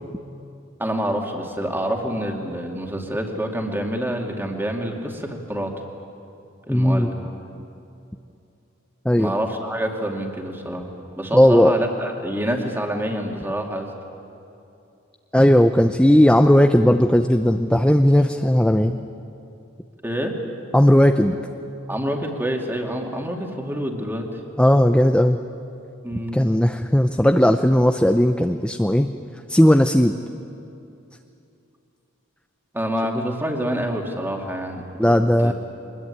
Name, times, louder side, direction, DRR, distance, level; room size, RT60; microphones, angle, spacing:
voice 1, 0.8-5.7 6.7-7.1 9.2-10.9 11.2-13.9 20.0-20.4 21.9-24.4 26.0-26.4 32.7-34.8 35.4-35.5, equal, 10° right, 2 dB, 2.5 m, -27 dB
voice 2, 6.7-7.1 9.0-9.3 11.3-11.7 15.3-19.0 20.7-21.4 24.6-25.4 26.3-29.1 29.5-30.2 35.0-35.5, equal, 5° left, 7 dB, 0.6 m, -16 dB
23.5 x 21.0 x 9.9 m, 2.7 s
head